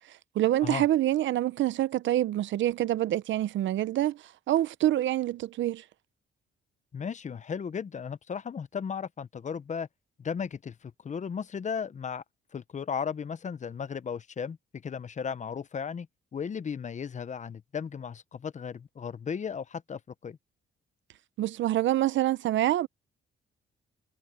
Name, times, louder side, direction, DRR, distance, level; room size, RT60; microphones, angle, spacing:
voice 1, 0.3-5.8 21.4-22.9, right 13 dB, 70° right, 0.7 m, -26 dB
voice 2, 6.9-9.9 10.2-12.2 12.5-16.1 16.3-20.4, left 6 dB, 40° left, 0.8 m, -35 dB
cardioid pair, 90°, 20 cm